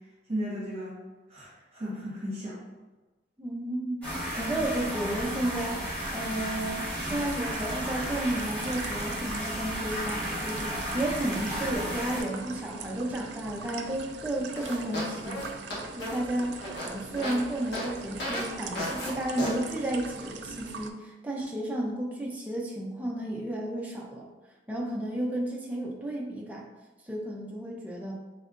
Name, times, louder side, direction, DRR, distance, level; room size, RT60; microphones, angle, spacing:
voice 1, 0.3-1.0 1.3-2.6, equal, 35° right, -7 dB, 1.1 m, -35 dB
voice 2, 3.4-15.5 16.0-24.2 24.7-26.7 27.0-28.1, right 1 dB, 10° right, -2 dB, 0.5 m, -32 dB
sound 1, 4.0-12.2, equal, 10° left, 1.4 m, -33 dB
sound 2, 6.9-20.9, right 5 dB, 70° right, 0.3 m, -42 dB
sound 3, 14.6-17.4 17.7-17.9 18.2-18.4 18.8-19.1 19.4-19.5, equal, 70° left, 1.1 m, -34 dB
3.5 x 3.2 x 2.5 m, 1.2 s
head